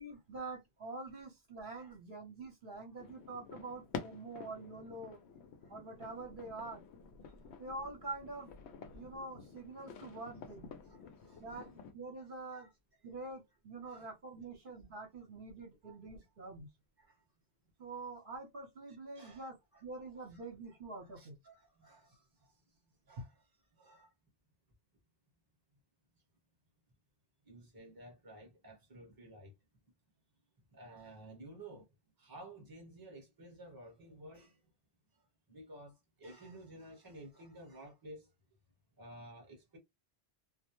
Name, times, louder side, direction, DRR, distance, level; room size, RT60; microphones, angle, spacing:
voice 1, 0.0-5.2 5.7-6.8 7.6-8.5 8.9-10.7 11.4-12.7 13.0-16.7 17.8-21.4, right 2 dB, 55° right, 0.9 m, -46 dB
sound 1, 3.0-11.9, left 5 dB, 85° left, 0.9 m, -50 dB
voice 2, 10.8-11.7 12.2-12.7 13.9-14.1 15.8-16.0 17.0-17.2 19.1-19.8 20.1-22.8 23.1-23.5 23.7-24.1 27.4-29.6 30.7-34.7 35.1-38.6 39.0-39.8, right 1 dB, 20° right, 0.9 m, -54 dB
2.3 x 2.1 x 2.9 m
omnidirectional pair, 1.1 m